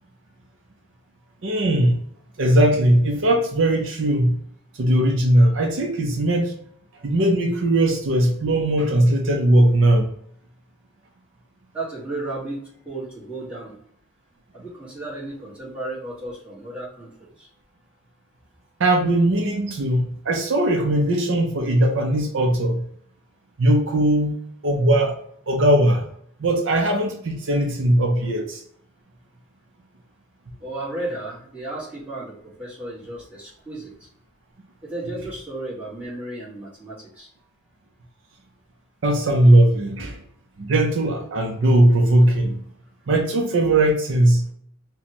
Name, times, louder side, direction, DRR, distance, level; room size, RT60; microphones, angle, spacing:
voice 1, 1.4-2.0 2.4-4.4 4.8-6.5 7.0-10.0 18.8-22.9 23.6-24.4 24.6-25.2 25.5-26.1 26.4-28.6 39.0-40.2 40.6-42.6 43.1-44.5, right 1 dB, 65° right, 2 dB, 0.6 m, -19 dB
voice 2, 11.7-13.7 14.5-17.5 30.6-34.1 34.8-37.3, right 2 dB, 5° right, -9 dB, 1.5 m, -34 dB
4.1 x 2.2 x 2.9 m, 0.67 s
head